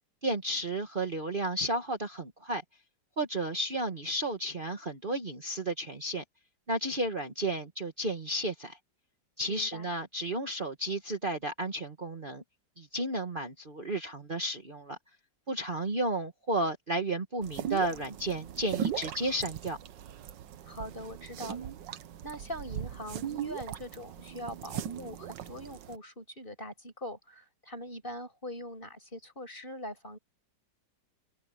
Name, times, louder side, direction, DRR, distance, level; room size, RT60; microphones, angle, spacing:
voice 1, 0.2-2.6 3.2-6.2 6.7-8.8 9.4-12.4 12.8-15.0 15.5-19.8, right 1 dB, 30° right, 1.8 m, -32 dB
voice 2, 9.5-9.9 20.6-21.7 22.2-30.2, equal, 25° left, 6.4 m, -42 dB
sound 1, 17.4-26.0, right 9 dB, 75° right, 1.6 m, -39 dB
omnidirectional pair, 2.0 m